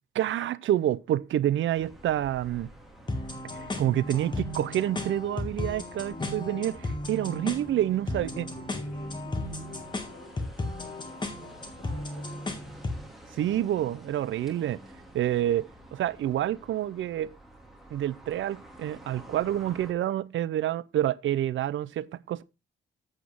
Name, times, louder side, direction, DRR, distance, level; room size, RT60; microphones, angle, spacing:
voice 1, 0.1-2.7 3.5-6.8 7.1-8.4 13.4-14.8 15.1-17.3 17.9-22.4, right 12 dB, 70° right, 0.5 m, -28 dB
sound 1, 1.7-19.9, right 1 dB, ahead, 2.3 m, -50 dB
sound 2, 3.1-13.1, left 2 dB, 20° left, 1.7 m, -35 dB
voice 2, 6.1-6.7 8.2-12.7, left 4 dB, 50° left, 3.5 m, -49 dB
8.1 x 7.8 x 3.5 m
cardioid pair, 130°, 20 cm